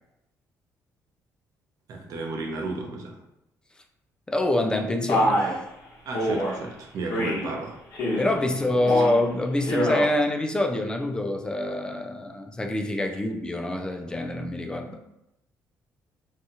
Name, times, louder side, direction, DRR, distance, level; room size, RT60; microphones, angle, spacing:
voice 1, 1.9-3.2 6.1-7.7, right 3 dB, 60° right, 1 dB, 0.6 m, -33 dB
voice 2, 4.3-5.6 8.2-15.0, left 1 dB, 10° left, 3 dB, 0.3 m, -26 dB
Male speech man speaking, 5.1-5.6 6.1-6.5 7.1-7.5 7.9-8.4 8.8-9.2 9.6-10.1, equal, 55° left, 1.0 m, -25 dB
2.7 x 2.3 x 2.8 m, 0.85 s
cardioid pair, 125°, 7 cm